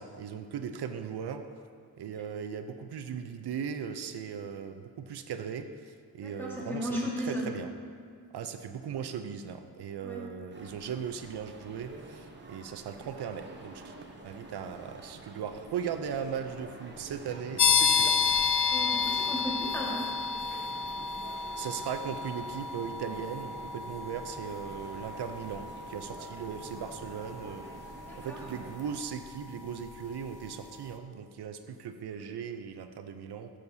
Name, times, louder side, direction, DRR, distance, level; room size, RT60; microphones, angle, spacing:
voice 1, 0.0-1.4 2.0-7.7 8.3-13.9 14.2-18.2 21.6-33.5, right 7 dB, 85° right, 8 dB, 0.5 m, -38 dB
voice 2, 6.2-7.4 10.0-10.2 18.7-20.0 28.1-28.4, equal, 5° left, -5 dB, 1.5 m, -35 dB
sound 1, 10.5-29.0, right 2 dB, 30° right, 0.8 m, -48 dB
sound 2, 17.6-30.1, left 6 dB, 55° left, 0.5 m, -31 dB
12.5 x 6.4 x 2.7 m, 2.1 s
wide cardioid pair, 170°, 38 cm